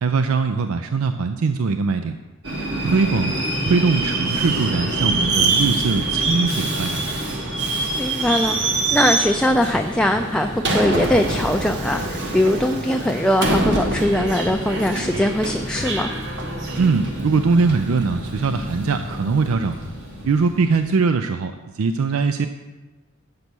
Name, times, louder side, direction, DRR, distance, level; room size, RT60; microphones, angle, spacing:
voice 1, 0.0-2.2 2.8-3.3 3.7-7.0 16.8-19.8 20.2-22.5, right 4 dB, 80° right, 9 dB, 0.4 m, -21 dB
Subway metro underground, 2.4-20.9, right 2 dB, 55° right, 1.3 m, -25 dB
sound 1, 4.5-5.0 6.2-7.2 8.5-9.5 9.7-12.7 13.7-13.9 14.4-14.7 15.1-15.4 15.8-16.0 16.8-18.3 18.5-20.4, left 2 dB, 40° left, 0.7 m, -40 dB
voice 2, 7.9-16.1, left 1 dB, 5° left, 3 dB, 0.3 m, -21 dB
8.3 x 6.7 x 6.1 m, 1.2 s
head